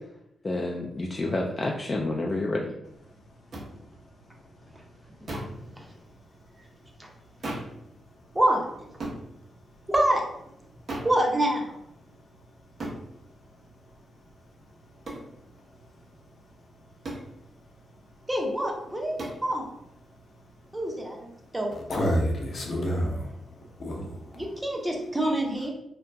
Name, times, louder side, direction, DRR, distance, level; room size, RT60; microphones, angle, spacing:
voice 1, 0.4-2.7, left 2 dB, 35° left, 0 dB, 0.3 m, -29 dB
sound 1, 3.5-3.7 5.3-5.6 7.4-7.8 9.0-9.2 10.9-11.2 12.8-13.0 15.0-15.3 17.0-17.3 19.2-19.4, right 1 dB, 60° right, 0.9 m, -35 dB
voice 2, 8.3-8.9 9.9-10.2 11.0-11.7 18.3-19.7 20.7-21.3 21.5-21.8 24.3-25.7, right 1 dB, 20° right, 0 dB, 0.7 m, -26 dB
voice 3, 21.7-24.4, equal, 60° left, 0 dB, 0.7 m, -29 dB
2.7 x 2.5 x 2.2 m, 0.81 s
cardioid pair, 60°, 0 cm